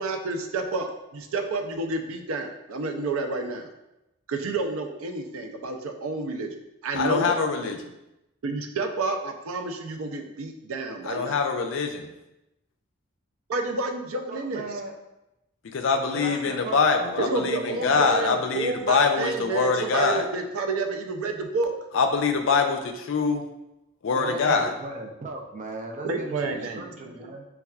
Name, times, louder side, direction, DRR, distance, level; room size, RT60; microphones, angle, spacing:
voice 1, 0.0-3.7 4.3-6.5 6.8-7.4 8.4-11.4 13.5-14.7 17.2-21.7 26.0-27.3, right 3 dB, 90° right, 5 dB, 0.4 m, -30 dB
voice 2, 6.9-7.8 11.1-12.1 15.6-20.3 21.9-23.4 24.0-24.7, left 4 dB, 65° left, 5 dB, 0.4 m, -24 dB
voice 3, 14.3-14.9 16.1-16.9 24.1-27.4, right 2 dB, 35° right, 2 dB, 0.5 m, -37 dB
5.4 x 2.3 x 2.3 m, 0.93 s
head